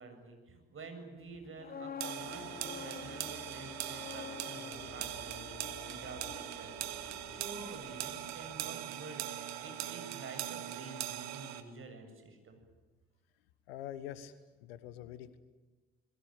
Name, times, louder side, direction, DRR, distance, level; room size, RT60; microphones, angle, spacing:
voice 1, 0.0-12.6, right 3 dB, 45° right, 6 dB, 7.7 m, -49 dB
sound 1, 1.3-7.3 7.6-7.8, left 7 dB, 30° left, 1.0 m, -49 dB
sound 2, 2.0-11.6, right 12 dB, 65° right, 2.0 m, -41 dB
sound 3, 2.2-8.7, left 6 dB, 50° left, 3.3 m, -52 dB
voice 2, 13.7-15.4, left 11 dB, 80° left, 15 dB, 1.4 m, -45 dB
28.5 x 22.0 x 9.1 m, 1.2 s
hypercardioid pair, 50°, 30 cm